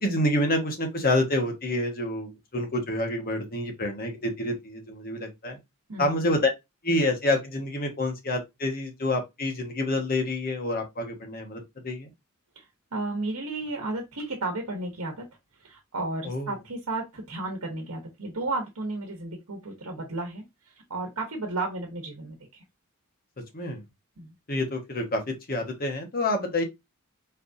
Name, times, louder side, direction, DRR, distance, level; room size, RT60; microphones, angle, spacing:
voice 1, 0.0-5.6 6.0-6.5 6.8-12.1 16.2-16.5 23.5-23.8 24.5-26.6, left 1 dB, 45° left, 1.4 m, -28 dB
voice 2, 5.9-6.2 12.6-12.7 12.9-15.3 15.6-22.6 24.2-24.3, right 2 dB, 80° right, 1.1 m, -33 dB
4.5 x 3.4 x 2.7 m
head